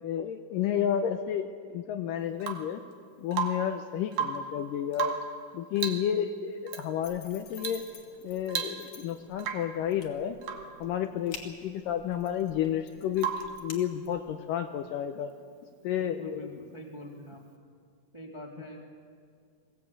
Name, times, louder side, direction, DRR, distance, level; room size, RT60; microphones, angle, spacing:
voice 1, 0.0-2.8 3.2-5.2 5.5-7.8 8.2-10.4 10.8-13.3 13.6-15.3 15.8-16.5, left 9 dB, 80° left, 7 dB, 2.1 m, -31 dB
Rain / Water tap faucet / Drip, 2.4-2.8 3.3-3.8 4.1-4.5 4.9-5.4 5.8-6.1 6.7-6.9 7.6-7.9 8.1-8.2 8.5-9.1 9.4-9.8 10.4-10.8 13.2-13.6 15.5-15.6, right 7 dB, 65° right, 2.5 m, -34 dB
sound 1, 7.0-14.4, left 6 dB, 55° left, 2.8 m, -50 dB
voice 2, 16.0-17.5 18.1-18.9, equal, 10° right, -1 dB, 1.6 m, -45 dB
21.5 x 16.0 x 8.4 m, 2.1 s
omnidirectional pair, 4.4 m